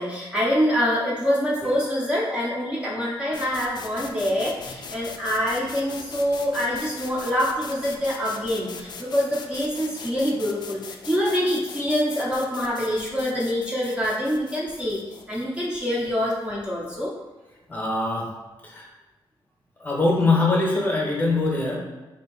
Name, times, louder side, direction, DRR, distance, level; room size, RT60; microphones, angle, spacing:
voice 1, 0.0-15.0 15.3-17.1, equal, 10° right, -6 dB, 0.5 m, -25 dB
sound 1, 3.3-17.0, left 5 dB, 50° left, 0.3 m, -41 dB
voice 2, 17.7-18.3 18.6-18.8 19.8-21.8, left 2 dB, 20° left, -2 dB, 0.8 m, -22 dB
3.7 x 2.6 x 3.8 m, 1.2 s
wide cardioid pair, 165°, 9 cm